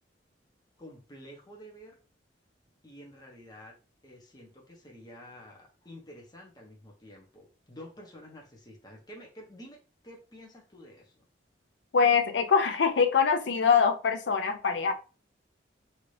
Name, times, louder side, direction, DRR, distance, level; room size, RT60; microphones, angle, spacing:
voice 1, 0.8-1.9 2.8-3.7 4.0-11.2, equal, 20° left, 0.8 m, -49 dB
voice 2, 11.9-14.9, left 6 dB, 65° left, 0.5 m, -24 dB
2.8 x 2.5 x 3.2 m
head